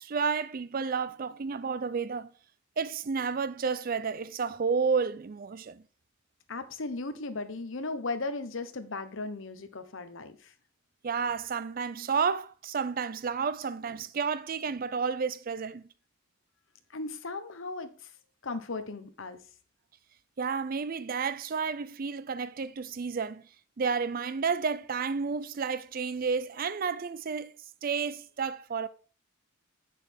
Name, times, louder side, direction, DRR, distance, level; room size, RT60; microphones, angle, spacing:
voice 1, 0.0-2.3 2.8-5.8 11.0-15.8 20.4-23.4 23.8-27.5 27.8-28.9, right 5 dB, 40° right, 0.4 m, -31 dB
voice 2, 6.5-10.5 16.9-18.1 18.4-19.4, left 3 dB, 60° left, 1.0 m, -36 dB
8.3 x 6.5 x 3.5 m
head